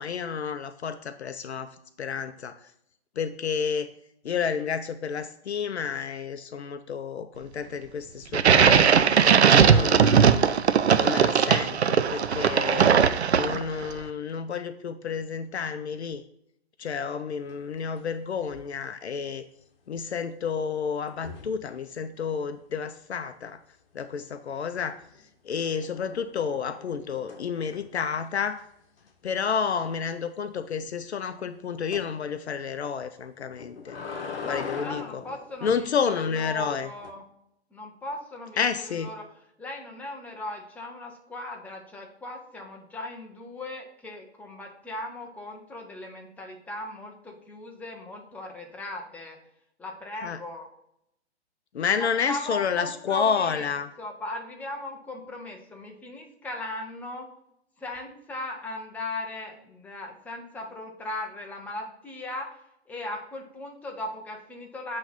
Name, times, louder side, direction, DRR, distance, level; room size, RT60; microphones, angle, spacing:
voice 1, 0.0-2.7 3.2-3.9 4.2-9.1 9.5-10.6 11.0-12.9 13.3-16.2 16.8-19.4 19.9-23.6 23.9-25.0 25.4-28.7 29.2-34.0 34.4-35.2 35.6-36.9 38.6-39.1 50.2-50.4 51.7-53.9, left 6 dB, 80° left, 9 dB, 0.5 m, -30 dB
sound 1, 8.3-13.8, right 7 dB, 80° right, 0.5 m, -19 dB
sound 2, 17.5-18.1 18.4-18.8 21.1-21.6 24.7-25.2 25.7-28.1 28.5-28.6 29.0-29.1 29.5-29.6 31.9-32.1 33.4-35.9 36.7-37.1, left 5 dB, 60° left, 1.1 m, -41 dB
voice 2, 34.4-37.2 37.7-39.2 39.6-49.4 49.8-50.7 52.0-53.7 54.0-57.3 57.8-62.6 62.9-65.0, left 2 dB, 5° left, 1 dB, 0.6 m, -38 dB
7.7 x 3.2 x 4.0 m, 0.77 s
figure-of-eight pair, 120°, 33 cm